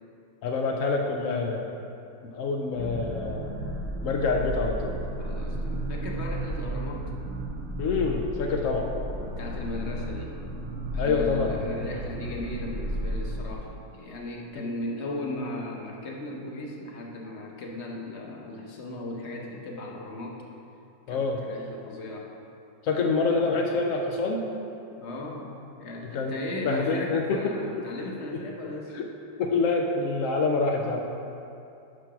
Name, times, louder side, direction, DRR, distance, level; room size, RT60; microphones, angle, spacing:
voice 1, 0.4-1.8 2.3-3.5 4.0-4.9 7.8-8.9 11.0-11.5 14.6-14.7 21.1-21.4 22.8-24.5 26.1-27.4 28.9-29.1 29.4-31.1, left 4 dB, 75° left, 1 dB, 0.7 m, -26 dB
sound 1, 2.7-13.6, right 1 dB, 50° right, 1.2 m, -33 dB
voice 2, 5.2-7.1 9.2-10.4 10.9-20.4 21.1-22.3 23.4-23.5 25.0-25.5 25.8-28.9, left 2 dB, 45° left, -1 dB, 1.0 m, -37 dB
6.7 x 5.8 x 6.0 m, 2.7 s
omnidirectional pair, 2.0 m